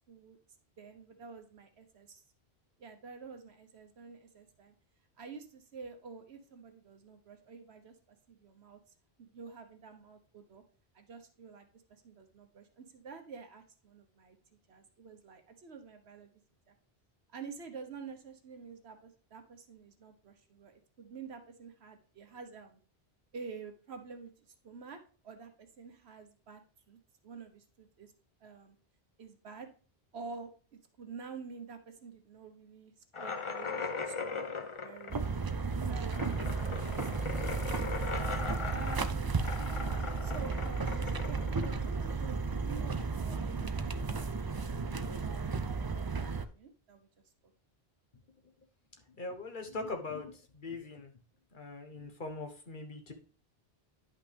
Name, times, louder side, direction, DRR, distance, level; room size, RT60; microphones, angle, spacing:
voice 1, 0.1-0.4 0.8-2.2 2.8-4.7 5.2-8.8 9.2-10.6 10.9-14.4 14.7-16.3 16.7-16.8 17.3-22.8 23.3-26.6 26.9-28.1 28.4-28.7 29.2-29.7 30.1-32.9 33.2-35.3 37.8-37.9 38.7-39.3 40.2-47.1 47.4-47.5, right 5 dB, 85° right, 5 dB, 1.3 m, -49 dB
sound 1, 33.1-42.5, left 4 dB, 35° left, 0.6 m, -39 dB
sound 2, 35.1-46.5, right 4 dB, 35° right, 0.3 m, -34 dB
voice 2, 49.1-51.1 51.5-53.1, left 3 dB, 50° left, 5 dB, 1.4 m, -41 dB
10.5 x 5.7 x 3.4 m, 0.40 s
omnidirectional pair, 1.1 m